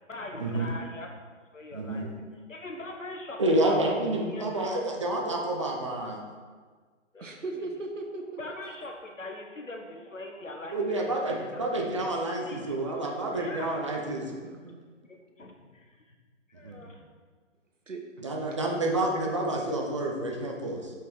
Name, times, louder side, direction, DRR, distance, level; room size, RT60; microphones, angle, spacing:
voice 1, 0.1-1.1 1.5-2.1 2.5-4.0 4.3-4.4 7.1-7.2 7.5-7.7 8.4-11.6 12.5-12.7 13.0-13.8 15.1-16.1 16.5-17.0, left 2 dB, 75° left, 2 dB, 1.4 m, -42 dB
voice 2, 1.7-2.1 3.4-6.2 10.7-14.3 16.6-16.9 18.2-20.9, right 1 dB, 25° right, 0 dB, 0.7 m, -29 dB
voice 3, 7.2-8.4 14.2-14.8 17.9-18.0, right 3 dB, 70° right, 2 dB, 1.3 m, -38 dB
5.8 x 5.5 x 4.6 m, 1.5 s
figure-of-eight pair, 145°, 39 cm